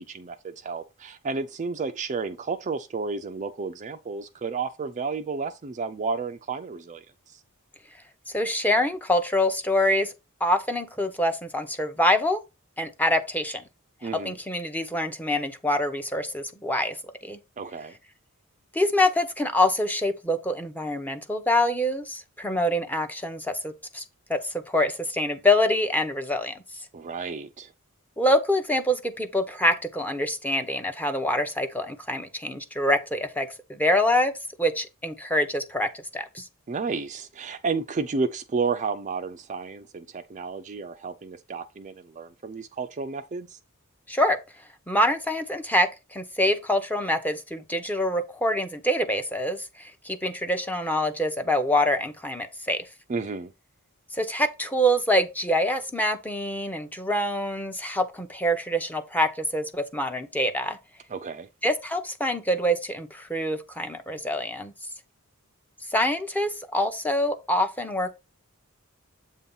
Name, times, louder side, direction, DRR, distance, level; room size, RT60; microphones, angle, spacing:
voice 1, 0.1-7.4 14.0-14.4 17.6-18.0 26.9-27.7 36.7-43.6 53.1-53.5 61.1-61.5, right 4 dB, 35° right, 0.4 m, -32 dB
voice 2, 8.3-10.1 10.4-12.4 12.8-13.6 14.2-17.0 17.2-17.4 18.7-24.0 24.3-24.4 24.7-26.6 28.2-34.3 34.6-36.4 44.1-44.4 44.9-52.8 54.1-60.8 61.6-64.7 65.9-68.2, left 1 dB, 10° left, 0.7 m, -25 dB
7.8 x 2.8 x 5.4 m
head